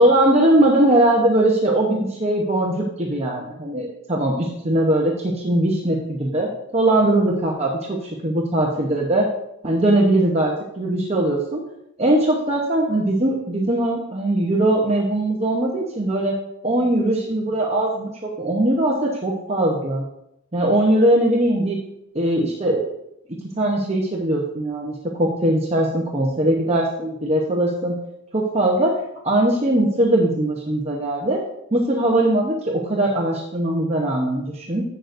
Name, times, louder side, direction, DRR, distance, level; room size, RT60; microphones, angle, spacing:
voice 1, 0.0-9.3 9.6-11.6 12.0-16.4 16.6-20.0 20.5-21.8 22.1-22.9 23.6-24.9 25.2-28.0 28.3-28.9 29.2-31.4 31.7-34.8, right 1 dB, 30° right, -2 dB, 0.9 m, -20 dB
11.0 x 8.0 x 2.6 m, 0.81 s
head